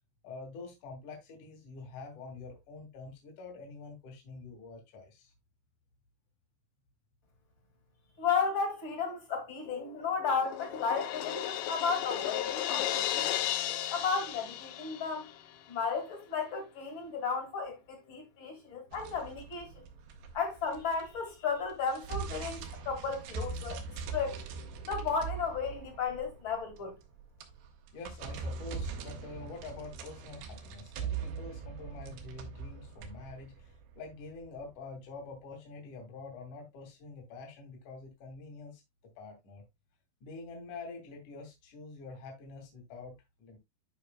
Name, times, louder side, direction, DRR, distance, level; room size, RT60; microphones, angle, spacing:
voice 1, 0.2-5.3 27.9-38.8 39.2-39.6 40.2-43.6, left 3 dB, 55° left, 3.5 m, -46 dB
voice 2, 8.2-13.3 13.7-15.3 15.7-19.7 20.3-23.8 24.1-24.3 24.8-26.9, left 5 dB, 35° left, 2.4 m, -34 dB
Crash cymbal, 9.7-15.4, left 12 dB, 80° left, 1.9 m, -35 dB
sound 1, 18.9-21.3 21.6-34.6, right 5 dB, 90° right, 3.3 m, -41 dB
12.0 x 5.4 x 2.3 m
omnidirectional pair, 4.6 m